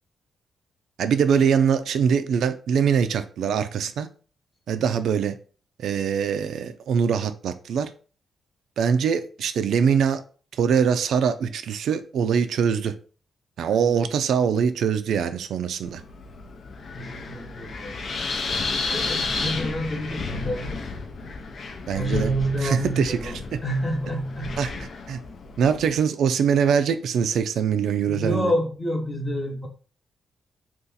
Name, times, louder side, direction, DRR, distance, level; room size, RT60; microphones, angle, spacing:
voice 1, 1.0-4.1 4.7-5.4 5.8-7.9 8.8-10.2 10.6-12.9 13.6-16.0 21.9-22.3 22.6-23.3 24.6-24.7 25.1-25.2 25.6-28.5, right 7 dB, 80° right, 10 dB, 0.4 m, -23 dB
voice 2, 13.7-14.0 16.9-18.0 18.9-20.9 21.9-24.7 28.1-29.7, equal, 25° left, 2 dB, 1.0 m, -29 dB
Wind, 15.8-26.0, left 3 dB, 55° left, 0.5 m, -32 dB
2.7 x 2.4 x 3.8 m, 0.39 s
cardioid pair, 80°, 0 cm